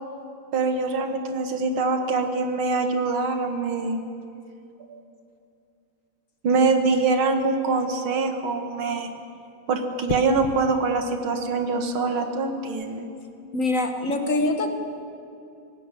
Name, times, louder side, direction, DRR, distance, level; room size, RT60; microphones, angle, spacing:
voice 1, 0.5-4.0 4.9-5.0 6.4-9.1 9.7-13.1, right 4 dB, 85° right, 6 dB, 2.4 m, -24 dB
sound 1, 7.2-7.6 10.1-10.6 12.6-12.9, left 6 dB, 75° left, 1.8 m, -34 dB
voice 2, 13.5-14.7, left 2 dB, 45° left, 5 dB, 1.5 m, -24 dB
19.5 x 16.5 x 9.1 m, 2.6 s
omnidirectional pair, 2.2 m